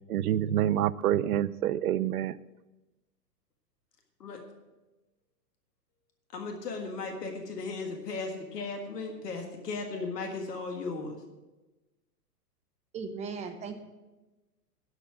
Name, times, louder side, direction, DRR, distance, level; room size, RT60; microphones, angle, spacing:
voice 1, 0.1-2.4, right 11 dB, 65° right, 20 dB, 0.5 m, -27 dB
voice 2, 6.3-11.2, left 3 dB, 70° left, 4 dB, 1.7 m, -36 dB
voice 3, 12.9-13.8, right 5 dB, 15° right, 7 dB, 0.8 m, -37 dB
11.5 x 5.6 x 7.6 m, 1.1 s
hypercardioid pair, 110°, 49 cm